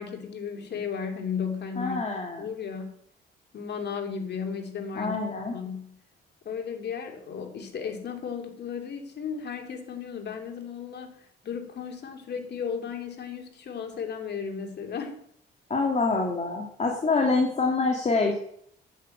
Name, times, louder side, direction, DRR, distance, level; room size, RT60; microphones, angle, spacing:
voice 1, 0.0-2.0 2.4-2.9 3.5-5.2 5.5-5.9 6.4-11.1 11.4-15.2, left 6 dB, 60° left, 4 dB, 2.9 m, -34 dB
voice 2, 1.8-2.5 5.0-5.5 15.7-18.4, left 3 dB, 35° left, 1 dB, 2.6 m, -26 dB
9.3 x 9.0 x 7.8 m, 0.67 s
cardioid pair, 90°, 20 cm